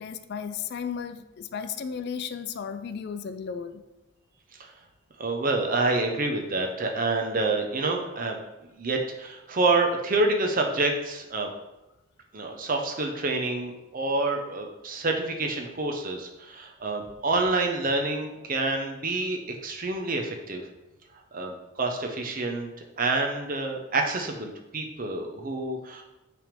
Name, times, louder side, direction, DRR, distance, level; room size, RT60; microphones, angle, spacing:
voice 1, 0.0-3.8, left 7 dB, 50° left, 10 dB, 0.3 m, -34 dB
voice 2, 5.2-8.4 8.8-11.5 12.3-20.6 21.3-22.7 23.0-26.0, right 2 dB, 40° right, 3 dB, 0.8 m, -27 dB
6.0 x 3.5 x 5.2 m, 0.95 s
head